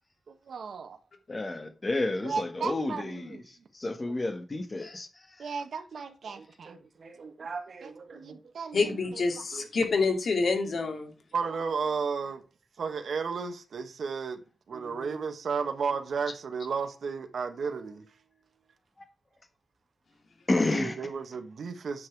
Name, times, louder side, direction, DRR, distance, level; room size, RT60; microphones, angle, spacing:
voice 1, 0.3-1.0 2.2-3.4 5.4-6.8 7.8-9.2 11.3-12.4 12.8-14.4 14.7-18.1 20.8-22.1, right 5 dB, 70° right, 1.3 m, -34 dB
voice 2, 1.3-5.5 20.5-21.0, left 2 dB, 25° left, 1.6 m, -31 dB
voice 3, 6.4-8.4 9.5-9.7 14.7-15.3, right 4 dB, 55° right, 2.1 m, -44 dB
voice 4, 8.7-11.1, left 4 dB, 55° left, 2.6 m, -27 dB
9.5 x 6.3 x 4.7 m
wide cardioid pair, 170°, 0 cm